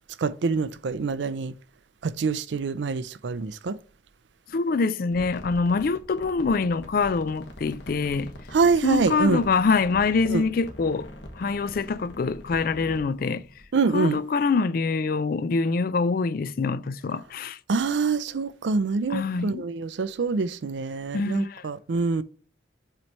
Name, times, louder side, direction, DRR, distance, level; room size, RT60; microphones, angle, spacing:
voice 1, 0.2-1.5 2.0-3.8 8.5-9.4 10.3-10.4 13.7-14.2 17.7-22.2, right 4 dB, 75° right, 0.4 m, -25 dB
voice 2, 4.5-8.3 8.8-11.1 11.4-13.4 13.9-17.6 19.1-19.6 21.1-21.6, left 4 dB, 50° left, 0.4 m, -25 dB
sound 1, 5.1-13.7, left 1 dB, 80° left, 1.3 m, -44 dB
7.5 x 3.1 x 4.1 m
head